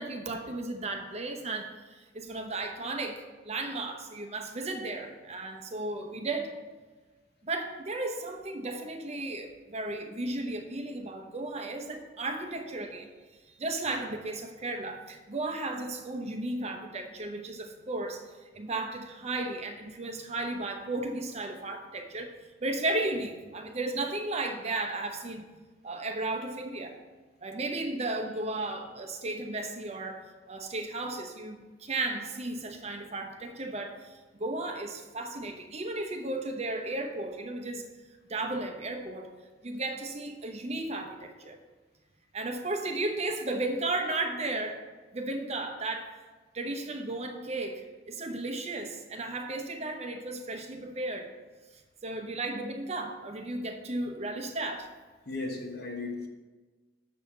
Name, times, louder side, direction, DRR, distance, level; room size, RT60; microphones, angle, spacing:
voice 1, 0.0-6.5 7.4-13.1 13.6-18.2 18.5-22.3 22.6-25.5 25.8-27.0 27.4-37.9 38.3-39.3 39.6-41.6 42.3-44.8 45.1-46.1 46.5-51.3 52.0-54.9, right 2 dB, 35° right, 0.8 m, -34 dB
voice 2, 55.3-56.3, left 3 dB, 60° left, 1.0 m, -35 dB
7.0 x 4.8 x 7.0 m
head